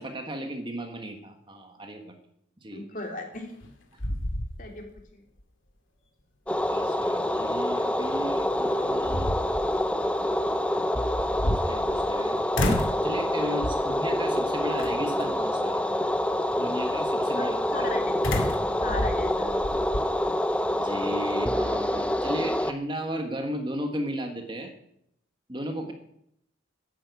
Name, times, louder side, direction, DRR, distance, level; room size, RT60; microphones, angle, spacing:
voice 1, 0.0-2.1 2.6-2.8 3.9-4.0 6.6-9.3 11.4-12.5 13.0-15.8 16.6-17.5 20.7-24.7 25.5-25.9, equal, 25° right, 5 dB, 1.5 m, -35 dB
voice 2, 2.7-3.5 4.6-5.2 13.8-14.0 17.3-18.2 18.8-19.5, left 2 dB, 40° left, 2 dB, 3.2 m, -37 dB
sound 1, 3.4-3.7 4.0-5.0 5.4-5.5 8.2-8.3 8.8-9.7 11.1-12.2 12.5-13.1 13.6-14.0 14.8-15.2 18.2-20.1, left 1 dB, 80° left, 2.3 m, -30 dB
sound 2, 6.5-22.7, left 1 dB, 5° left, 0.6 m, -27 dB
11.5 x 10.5 x 8.3 m, 0.75 s
head